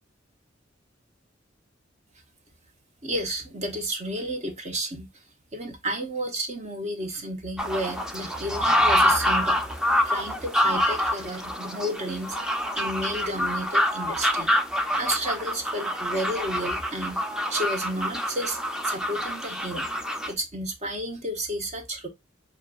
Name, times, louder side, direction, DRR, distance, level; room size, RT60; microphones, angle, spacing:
voice 1, 3.0-5.1 5.5-9.6 10.0-12.4 12.7-14.5 14.9-17.2 17.5-18.6 18.8-19.9 20.3-22.1, right 1 dB, 35° right, 1.1 m, -31 dB
sound 1, 7.6-20.3, left 1 dB, 5° right, 0.6 m, -26 dB
6.3 x 2.5 x 2.5 m
head